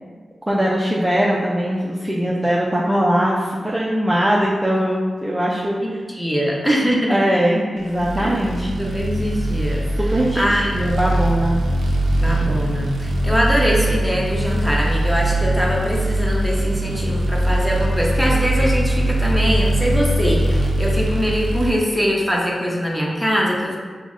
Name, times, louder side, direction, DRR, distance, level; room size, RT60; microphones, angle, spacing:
voice 1, 0.5-5.8 7.1-8.7 10.0-10.4 10.7-11.6, equal, 15° right, -5 dB, 0.5 m, -20 dB
voice 2, 5.8-7.2 8.2-8.3 8.8-9.9 10.3-10.7 12.2-23.8, equal, 5° left, -3 dB, 0.9 m, -22 dB
sound 1, 7.9-21.7, right 1 dB, 90° right, 0.5 m, -21 dB
4.7 x 2.1 x 3.7 m, 1.5 s
cardioid pair, 60°, 0 cm